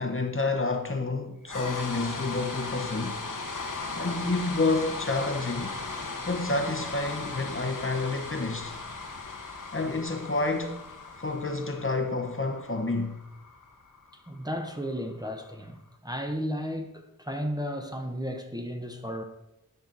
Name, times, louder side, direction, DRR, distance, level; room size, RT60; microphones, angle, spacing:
voice 1, 0.0-3.2 4.0-5.8 6.3-8.8 9.7-10.8 11.2-13.3, left 3 dB, 35° left, 0.9 m, -29 dB
sound 1, 1.5-15.6, left 3 dB, 60° left, 1.2 m, -38 dB
voice 2, 14.3-19.2, equal, 10° right, 0.9 m, -34 dB
10.5 x 6.0 x 3.9 m
wide cardioid pair, 65°, 35 cm